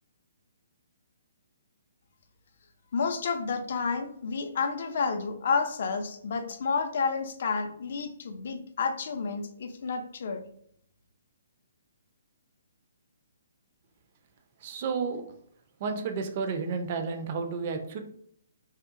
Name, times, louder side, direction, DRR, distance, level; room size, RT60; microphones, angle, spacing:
voice 1, 2.9-10.4, left 5 dB, 55° left, 7 dB, 0.3 m, -30 dB
voice 2, 14.6-15.2 15.8-18.0, right 5 dB, 40° right, 6 dB, 0.4 m, -31 dB
2.8 x 2.1 x 2.5 m, 0.67 s
figure-of-eight pair, 130°, 0 cm